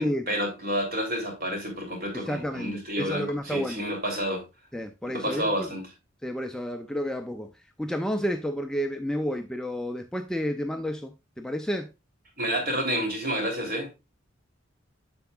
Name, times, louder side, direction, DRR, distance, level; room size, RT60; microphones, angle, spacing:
voice 1, 0.0-4.4 5.1-5.9 12.4-14.0, equal, 45° right, 3.0 m, -30 dB
voice 2, 2.1-3.8 4.7-5.7 6.2-11.9, equal, 5° left, 0.4 m, -31 dB
7.9 x 6.9 x 2.3 m
head